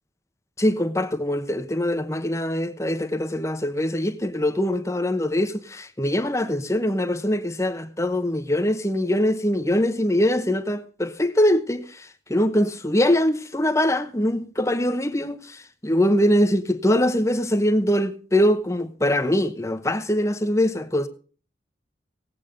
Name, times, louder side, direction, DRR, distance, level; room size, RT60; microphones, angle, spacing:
voice 1, 0.6-21.1, left 1 dB, 15° left, 1.0 m, -23 dB
18.5 x 8.4 x 5.1 m
head